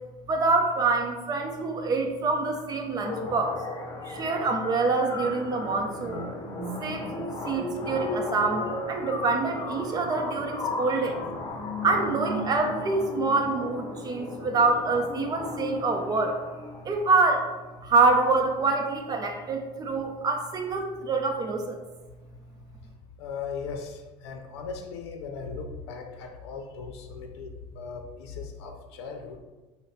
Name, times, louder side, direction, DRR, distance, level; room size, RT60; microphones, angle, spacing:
voice 1, 0.3-3.6 4.0-6.2 6.8-7.1 7.4-11.2 11.8-16.4 16.8-17.5 17.8-21.8, right 3 dB, 30° right, 3 dB, 0.7 m, -26 dB
sound 1, 3.0-17.0, left 2 dB, 30° left, 0.8 m, -35 dB
voice 2, 23.2-29.4, left 5 dB, 90° left, 4 dB, 0.6 m, -38 dB
5.4 x 2.2 x 4.1 m, 1.2 s
supercardioid pair, 105°, 14 cm